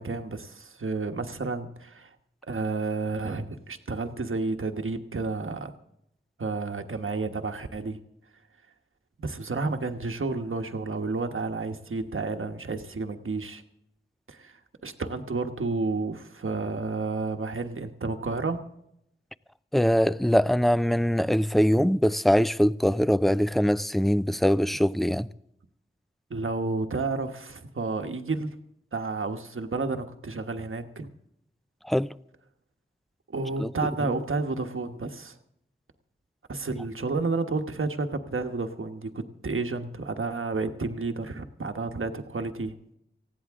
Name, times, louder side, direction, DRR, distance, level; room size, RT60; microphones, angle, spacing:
voice 1, 0.0-2.1 2.5-5.7 6.4-8.0 9.2-13.6 14.3-18.6 26.3-28.5 28.9-31.1 33.3-35.4 36.5-42.7, right 3 dB, 85° right, 1.3 m, -31 dB
voice 2, 19.7-25.3 31.9-32.1 33.6-33.7, equal, ahead, 0.4 m, -22 dB
19.0 x 15.5 x 3.6 m
wide cardioid pair, 75°, 21 cm